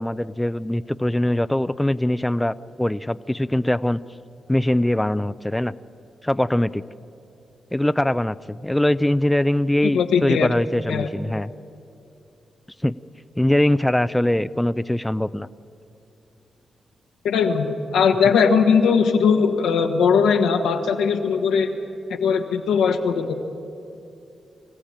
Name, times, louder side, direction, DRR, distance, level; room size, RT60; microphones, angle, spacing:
voice 1, 0.0-4.0 4.5-5.7 6.2-6.8 7.7-11.5 12.8-12.9 13.4-15.5, left 1 dB, 10° left, 14 dB, 0.5 m, -22 dB
voice 2, 9.9-10.5 10.9-11.1 17.2-21.7 22.2-23.3, left 6 dB, 90° left, 3 dB, 1.6 m, -19 dB
24.5 x 15.5 x 8.9 m, 2.6 s
supercardioid pair, 50°, 0 cm